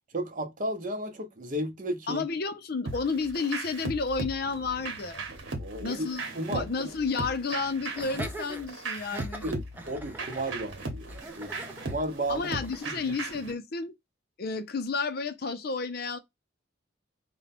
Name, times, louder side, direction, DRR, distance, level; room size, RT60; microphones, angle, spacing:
voice 1, 0.1-2.2 5.5-6.1 6.3-6.7 9.4-12.5 12.8-13.2, right 1 dB, 40° right, 0.8 m, -34 dB
voice 2, 2.1-5.3 5.8-6.2 6.5-9.4 12.3-13.9 14.4-16.2, left 4 dB, 50° left, 0.5 m, -31 dB
sound 1, 2.9-13.5, right 2 dB, 75° right, 1.0 m, -38 dB
Laughter, 7.9-12.9, right 1 dB, 10° right, 0.5 m, -43 dB
4.2 x 2.2 x 4.1 m
head